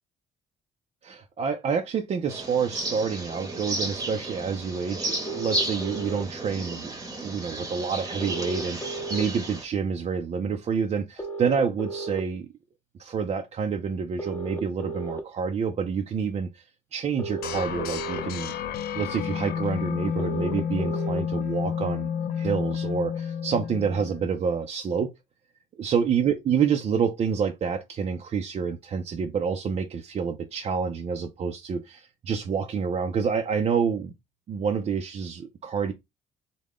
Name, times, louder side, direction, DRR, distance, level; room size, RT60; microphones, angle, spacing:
voice 1, 1.0-6.9 7.2-12.5 13.0-16.6 16.9-18.5 18.9-22.1 22.4-25.1 25.8-34.1 34.5-35.9, right 6 dB, 40° right, 0.4 m, -28 dB
sound 1, 2.3-9.6, right 1 dB, 20° right, 0.9 m, -33 dB
sound 2, 5.3-6.2 8.2-9.2 11.2-12.2 14.2-15.2 17.2-18.2 20.2-21.2, right 3 dB, 15° left, 0.7 m, -34 dB
sound 3, 17.4-24.4, left 7 dB, 65° left, 0.6 m, -30 dB
3.6 x 2.1 x 3.5 m
cardioid pair, 110°, 17 cm